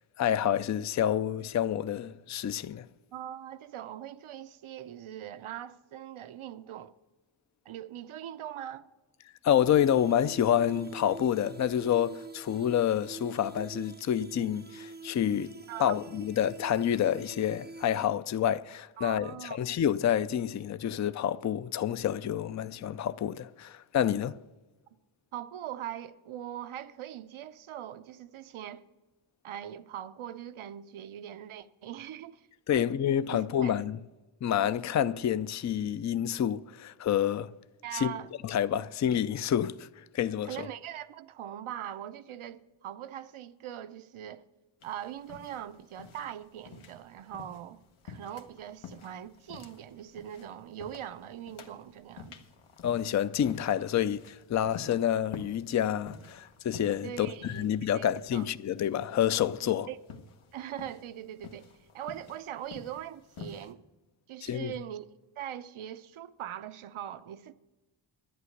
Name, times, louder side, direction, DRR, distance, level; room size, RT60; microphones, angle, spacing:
voice 1, 0.2-2.8 9.4-15.5 15.8-24.4 32.7-34.0 34.4-37.5 37.9-38.1 38.4-39.9 40.1-40.5 52.8-59.9 64.4-64.7, left 10 dB, 40° left, 0.4 m, -28 dB
voice 2, 3.1-6.9 7.7-8.9 15.7-16.0 19.0-19.6 25.3-28.9 29.4-32.9 33.3-33.8 37.8-38.3 40.4-44.4 44.8-52.4 57.0-57.7 57.9-58.4 59.6-60.0 60.5-61.7 61.9-63.8 64.3-65.1 65.4-67.5, right 11 dB, 80° right, 0.7 m, -41 dB
sound 1, 9.6-18.1, right 3 dB, 20° right, 0.6 m, -47 dB
sound 2, 44.8-63.7, left 5 dB, 85° left, 1.3 m, -49 dB
11.0 x 9.0 x 6.5 m
cardioid pair, 80°, 49 cm